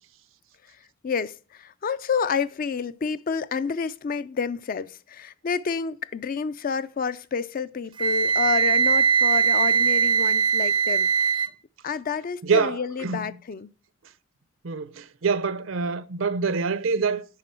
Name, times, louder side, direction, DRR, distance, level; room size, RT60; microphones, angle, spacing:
voice 1, 1.0-11.1 11.8-13.7, left 5 dB, 45° left, 0.4 m, -29 dB
Wind instrument woodwind instrument, 8.0-11.5, right 6 dB, 25° right, 0.4 m, -21 dB
voice 2, 12.4-13.2 14.6-17.3, right 5 dB, 80° right, 0.6 m, -25 dB
10.5 x 4.1 x 4.4 m
head